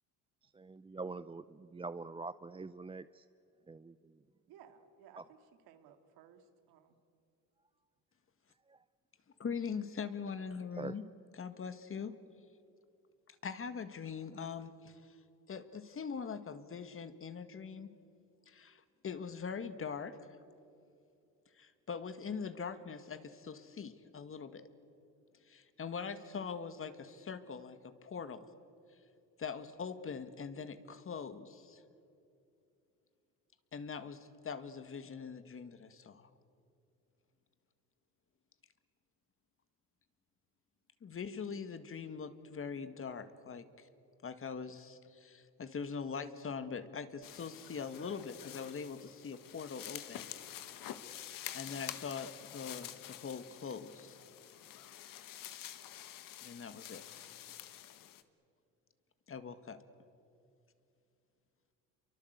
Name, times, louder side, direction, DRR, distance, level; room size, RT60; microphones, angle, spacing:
voice 1, 0.5-3.2 3.7-4.1 8.7-8.8 10.8-10.9, right 3 dB, 15° right, 13 dB, 0.6 m, -44 dB
voice 2, 4.5-6.9, right 8 dB, 75° right, 7 dB, 2.5 m, -59 dB
voice 3, 9.4-11.0 11.3-12.2 13.3-15.2 15.5-17.9 18.5-20.2 21.5-24.7 25.5-28.5 29.4-31.8 33.7-36.3 41.0-43.9 44.2-50.3 51.5-54.2 56.4-57.0 59.3-59.8, left 6 dB, 35° left, 11 dB, 1.9 m, -42 dB
sound 1, 47.2-58.2, left 11 dB, 60° left, 1.7 m, -48 dB
28.0 x 24.0 x 8.2 m, 2.7 s
supercardioid pair, 85°, 37 cm